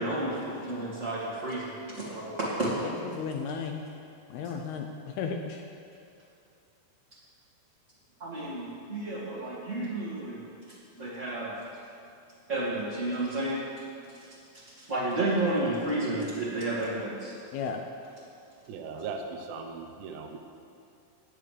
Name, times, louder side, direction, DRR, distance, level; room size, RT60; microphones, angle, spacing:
voice 1, 0.0-2.7 8.2-10.4 11.0-11.5 12.5-13.6 14.8-17.3, right 2 dB, 35° right, -10 dB, 1.1 m, -31 dB
voice 2, 2.8-3.8 4.3-4.9 5.2-5.6 17.5-17.8, left 6 dB, 80° left, 3 dB, 2.3 m, -34 dB
voice 3, 18.7-20.4, right 5 dB, 80° right, 3 dB, 2.8 m, -38 dB
18.5 x 9.8 x 3.3 m, 2.6 s
omnidirectional pair, 5.1 m